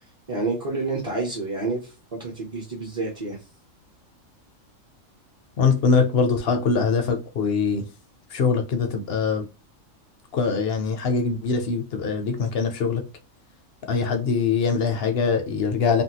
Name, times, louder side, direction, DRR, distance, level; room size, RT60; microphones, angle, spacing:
voice 1, 0.3-3.4, right 3 dB, 30° right, 0.7 m, -29 dB
voice 2, 5.6-7.8 8.3-9.4 10.3-13.0 13.9-16.0, left 5 dB, 60° left, 0.7 m, -23 dB
3.4 x 2.2 x 2.8 m
omnidirectional pair, 1.4 m